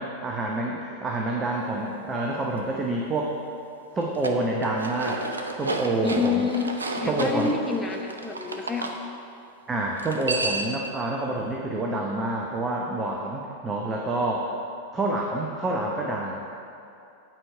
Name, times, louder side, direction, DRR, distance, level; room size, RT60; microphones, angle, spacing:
voice 1, 0.0-3.3 3.9-5.2 5.6-6.5 7.0-7.5 9.7-14.5 14.9-16.4, right 2 dB, 20° right, -1 dB, 0.8 m, -27 dB
sound 1, 4.0-9.0 10.0-10.9, right 3 dB, 75° right, 0.6 m, -32 dB
voice 2, 6.0-9.0, left 5 dB, 15° left, 3 dB, 0.7 m, -28 dB
9.0 x 4.7 x 5.6 m, 2.7 s
figure-of-eight pair, 90°, 0 cm